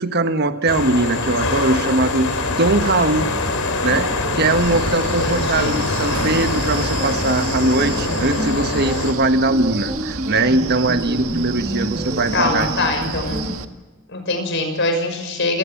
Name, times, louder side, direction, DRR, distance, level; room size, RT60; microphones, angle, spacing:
voice 1, 0.0-3.3 3.8-12.7, right 2 dB, 50° right, 9 dB, 1.5 m, -20 dB
sound 1, 0.7-9.1, left 3 dB, 85° left, 3.6 m, -23 dB
sound 2, 3.1-13.6, right 1 dB, 30° right, 2.1 m, -31 dB
Wind, 4.4-13.6, right 4 dB, 90° right, 1.6 m, -30 dB
voice 2, 5.0-5.8 12.3-13.4 14.1-15.6, left 2 dB, 55° left, 6 dB, 6.2 m, -23 dB
28.0 x 18.5 x 7.3 m, 1.2 s
head